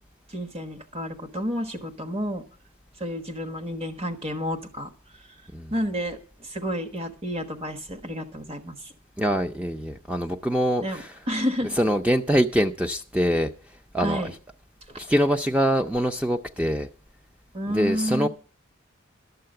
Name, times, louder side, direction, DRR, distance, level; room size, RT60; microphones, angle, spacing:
voice 1, 0.3-2.4 3.0-4.9 5.7-8.9 10.8-11.0 11.3-11.8 14.0-14.3 17.5-18.3, equal, 30° right, 1.3 m, -30 dB
voice 2, 9.2-11.1 11.8-13.5 13.9-14.3 15.0-16.9 17.7-18.3, equal, 5° right, 0.5 m, -24 dB
12.0 x 6.7 x 7.7 m
head